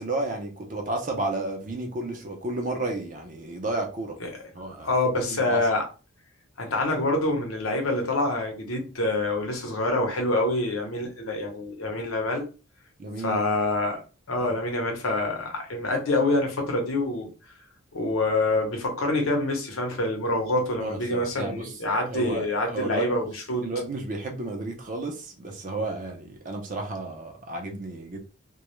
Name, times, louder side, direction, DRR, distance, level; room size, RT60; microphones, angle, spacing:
voice 1, 0.0-4.2 4.5-4.9 5.2-5.6 13.0-13.5 14.4-14.5 20.8-21.7 22.1-23.3 23.6-28.2, right 2 dB, 40° right, 0.5 m, -32 dB
voice 2, 4.8-5.8 6.6-12.4 13.2-14.0 14.3-17.3 17.9-23.6, left 2 dB, 85° left, 0.8 m, -26 dB
2.2 x 2.0 x 3.0 m
head